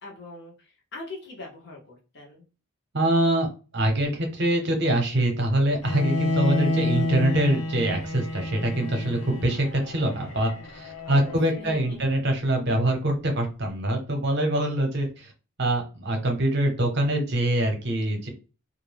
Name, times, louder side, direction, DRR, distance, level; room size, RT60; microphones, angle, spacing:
voice 1, 0.0-2.4 11.0-12.0, left 2 dB, 50° left, -2 dB, 0.8 m, -42 dB
voice 2, 2.9-3.5 3.7-15.3 15.6-18.3, right 1 dB, 50° right, 3 dB, 0.7 m, -24 dB
Bowed string instrument, 5.8-11.9, left 1 dB, 80° left, 0.6 m, -30 dB
2.4 x 2.1 x 3.2 m, 0.34 s
head